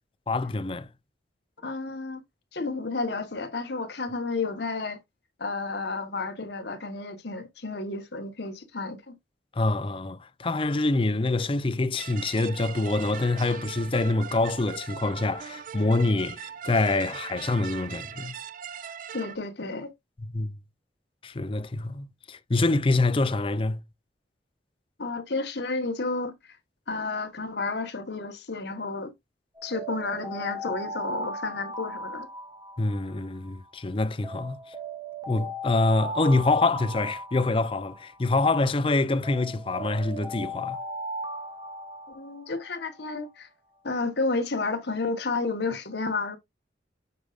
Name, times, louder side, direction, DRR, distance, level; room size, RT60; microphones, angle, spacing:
voice 1, 0.3-0.9 9.5-18.3 20.2-20.6 21.2-23.8 32.8-34.6 35.3-40.8, left 2 dB, 30° left, 0.5 m, -26 dB
voice 2, 1.6-2.2 2.5-5.0 5.4-9.1 19.1-19.9 25.0-26.3 26.9-29.1 29.6-32.3 42.1-43.5 43.8-46.4, left 3 dB, 65° left, 1.1 m, -31 dB
sound 1, 12.0-19.4, right 8 dB, 45° right, 0.4 m, -40 dB
Alarm, 29.5-33.7 34.2-38.7 39.2-43.0, equal, 20° right, 1.4 m, -38 dB
8.2 x 5.1 x 2.4 m
head